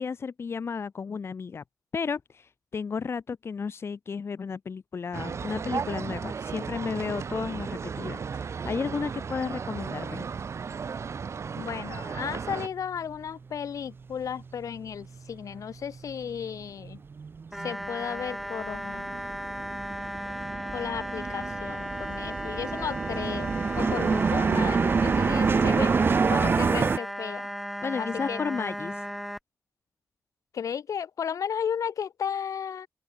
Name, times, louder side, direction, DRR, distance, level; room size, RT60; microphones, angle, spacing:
voice 1, 0.0-1.6 1.9-10.2 27.8-29.0, left 5 dB, 50° left, 0.8 m, -33 dB
sound 1, 5.1-12.7, right 6 dB, 55° right, 1.7 m, -35 dB
voice 2, 11.6-17.0 17.6-19.2 20.7-26.0 26.3-27.5 28.0-28.4 30.5-32.9, left 8 dB, 80° left, 1.7 m, -34 dB
sound 2, 14.1-14.2 14.4-15.6 15.9-27.0, right 5 dB, 40° right, 0.5 m, -27 dB
sound 3, 17.5-29.4, equal, ahead, 1.1 m, -36 dB
open air
wide cardioid pair, 105°, 6 cm